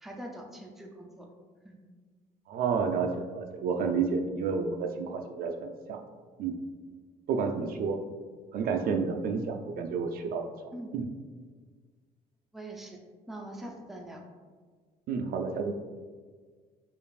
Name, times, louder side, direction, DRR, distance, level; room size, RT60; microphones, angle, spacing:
voice 1, 0.0-1.3 1.6-1.8 7.6-7.8 10.7-10.9 12.5-13.0 13.3-14.2, right 1 dB, ahead, 1 dB, 0.4 m, -43 dB
voice 2, 2.5-6.0 6.4-6.6 7.3-8.0 8.5-10.5 10.9-11.1 15.1-15.7, right 5 dB, 60° right, 4 dB, 0.4 m, -30 dB
5.1 x 2.5 x 2.3 m, 1.5 s
cardioid pair, 110°, 17 cm